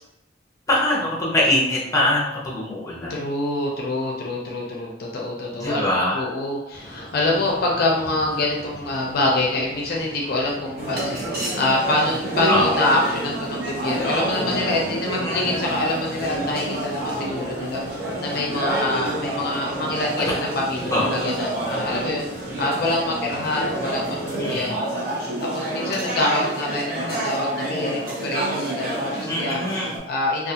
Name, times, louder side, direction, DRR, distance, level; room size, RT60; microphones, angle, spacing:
voice 1, 0.7-3.2 5.5-6.3 7.4-7.5 12.5-12.7 15.1-15.4 20.2-20.3 20.9-21.2 24.3-24.8 29.3-29.9, left 1 dB, 20° left, -4 dB, 0.6 m, -23 dB
voice 2, 3.1-5.8 6.1-24.7 25.4-29.6 30.1-30.5, left 2 dB, 55° left, -2 dB, 0.4 m, -25 dB
sound 1, 6.7-24.7, equal, 80° right, 1.3 m, -40 dB
sound 2, 10.8-30.0, right 1 dB, 55° right, 0.7 m, -28 dB
2.4 x 2.3 x 2.7 m, 0.88 s
head